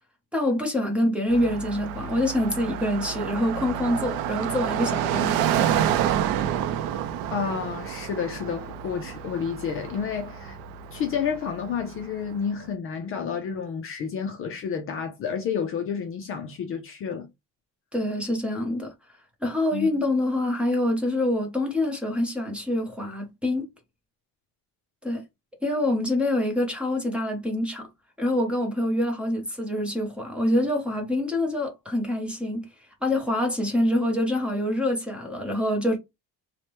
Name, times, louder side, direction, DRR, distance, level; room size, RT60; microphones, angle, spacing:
voice 1, 0.3-5.9 17.9-18.9 19.4-23.6 25.0-25.2 25.6-27.9 28.2-32.7 33.0-36.0, left 1 dB, 5° right, 0.6 m, -26 dB
Car passing by, 1.3-12.4, right 10 dB, 75° right, 0.5 m, -29 dB
voice 2, 7.3-10.6 10.9-17.3 19.7-19.9, left 7 dB, 40° left, 0.4 m, -30 dB
3.2 x 2.1 x 2.9 m
cardioid pair, 175°, 36 cm